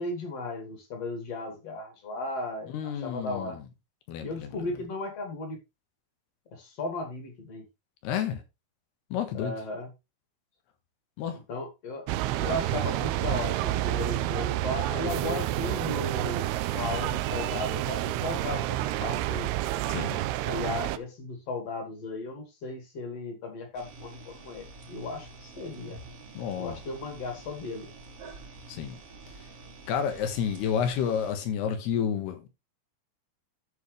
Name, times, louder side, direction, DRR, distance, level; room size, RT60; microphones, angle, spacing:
voice 1, 0.0-3.6 4.2-5.6 6.5-7.6 9.3-9.9 11.5-12.1 12.3-19.5 20.5-26.0 26.6-27.9, left 2 dB, 45° left, 2.7 m, -36 dB
voice 2, 2.7-3.6 4.1-4.7 8.0-8.4 9.1-9.5 11.2-11.4 19.9-20.2 26.3-26.8 28.7-29.0 29.9-32.5, left 8 dB, 85° left, 3.3 m, -30 dB
sound 1, 12.1-21.0, right 15 dB, 80° right, 2.5 m, -29 dB
sound 2, 23.7-31.3, right 2 dB, 50° right, 1.9 m, -47 dB
14.0 x 5.2 x 3.2 m
omnidirectional pair, 4.7 m